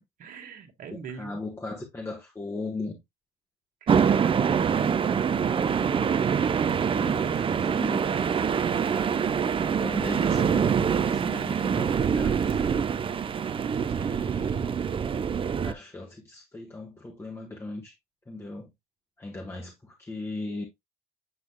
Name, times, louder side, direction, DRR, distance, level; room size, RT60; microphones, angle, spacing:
voice 1, 0.2-1.4 3.8-4.7 6.2-7.5, right 6 dB, 55° right, 1.6 m, -41 dB
voice 2, 0.9-3.0 6.9-8.1 9.5-12.9 13.6-14.7 15.6-17.9 18.3-18.7 19.2-20.7, left 2 dB, 15° left, 1.4 m, -38 dB
sound 1, 3.9-15.7, right 7 dB, 30° right, 0.6 m, -25 dB
8.2 x 5.1 x 2.2 m
cardioid pair, 110°, 17 cm